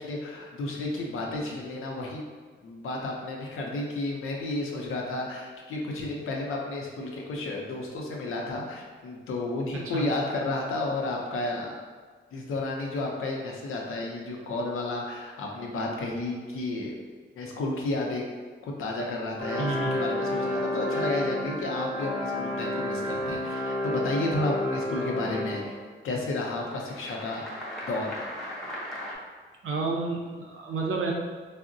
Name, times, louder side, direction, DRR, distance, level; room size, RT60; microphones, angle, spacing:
voice 1, 0.0-2.2 2.6-11.7 12.3-16.9 17.3-18.2 18.6-25.8 26.0-27.4 27.8-28.2, left 2 dB, 90° left, -1 dB, 0.6 m, -32 dB
sound 1, 19.4-25.8 26.6-29.2, left 1 dB, ahead, 0.6 m, -31 dB
voice 2, 19.6-20.0 29.6-31.1, right 4 dB, 85° right, 0 dB, 0.5 m, -30 dB
3.6 x 2.0 x 2.5 m, 1.5 s
cardioid pair, 105°, 21 cm